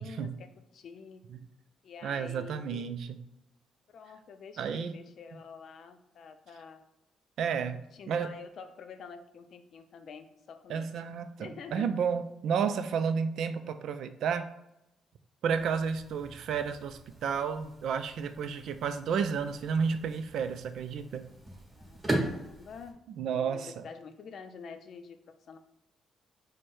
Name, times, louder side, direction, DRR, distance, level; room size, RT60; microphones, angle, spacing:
voice 1, 0.0-1.2 1.8-2.9 3.9-6.8 7.7-11.0 11.4-11.9 21.7-23.0 23.3-25.6, left 5 dB, 60° left, 8 dB, 0.4 m, -47 dB
voice 2, 2.0-3.2 4.6-4.9 7.4-8.3 10.7-14.5 15.4-21.2 23.2-23.8, right 6 dB, 75° right, 10 dB, 0.3 m, -31 dB
sound 1, 15.5-22.9, right 1 dB, 20° right, 1.2 m, -39 dB
4.6 x 2.1 x 4.4 m, 0.86 s
cardioid pair, 90°, 0 cm